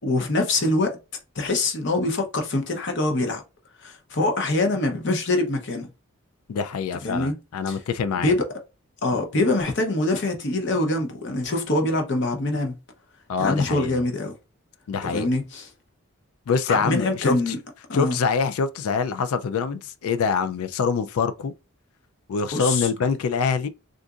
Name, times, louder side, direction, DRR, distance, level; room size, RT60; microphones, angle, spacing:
voice 1, 0.0-0.9 1.4-3.4 3.8-5.9 7.0-7.3 7.7-7.8 8.2-8.5 9.0-12.7 13.4-14.3 15.0-15.7 16.7-17.6 17.9-18.2 22.5-22.9, left 2 dB, 55° left, 0.8 m, -24 dB
voice 2, 6.5-8.3 13.3-14.0 14.9-15.3 16.5-17.5 17.9-21.5 22.3-23.7, left 5 dB, 90° left, 0.4 m, -25 dB
3.8 x 2.5 x 2.4 m
head